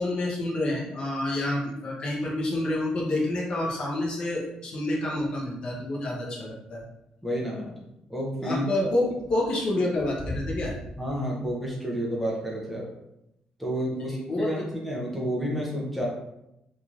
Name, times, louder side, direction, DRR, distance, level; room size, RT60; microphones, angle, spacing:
voice 1, 0.0-6.8 8.4-10.8 14.0-14.6, left 1 dB, 35° left, -3 dB, 0.7 m, -28 dB
voice 2, 7.2-7.8 8.1-8.6 11.0-12.9 13.6-16.1, equal, 5° left, -4 dB, 0.5 m, -30 dB
3.0 x 2.6 x 2.4 m, 0.85 s
cardioid pair, 175°, 3 cm